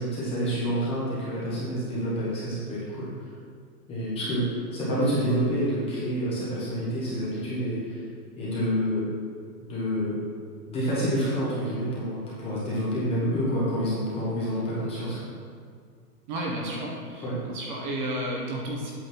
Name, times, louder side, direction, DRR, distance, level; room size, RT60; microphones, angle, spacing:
voice 1, 0.0-3.3 3.9-4.4 4.7-8.0 8.4-9.1 9.6-10.2 10.7-15.2 17.2-17.4, equal, 10° left, -7 dB, 1.0 m, -28 dB
voice 2, 16.3-18.9, right 1 dB, 30° right, -2 dB, 1.1 m, -32 dB
8.3 x 4.0 x 6.0 m, 2.1 s
hypercardioid pair, 170°, 48 cm